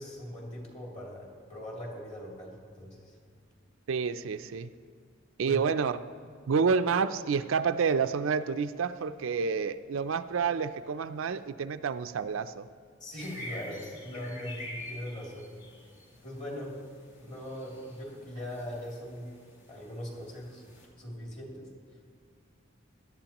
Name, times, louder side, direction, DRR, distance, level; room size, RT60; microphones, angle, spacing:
voice 1, 0.0-3.1 5.4-5.6 13.0-15.5 16.2-16.8 17.2-19.3 19.7-20.6 21.0-21.7, equal, 35° left, -2 dB, 2.8 m, -40 dB
voice 2, 3.9-4.7 5.4-6.0 6.5-12.7, right 5 dB, 80° right, 11 dB, 0.4 m, -29 dB
sound 1, 13.2-20.9, left 1 dB, 65° left, 2.6 m, -47 dB
17.5 x 12.0 x 3.0 m, 2.2 s
head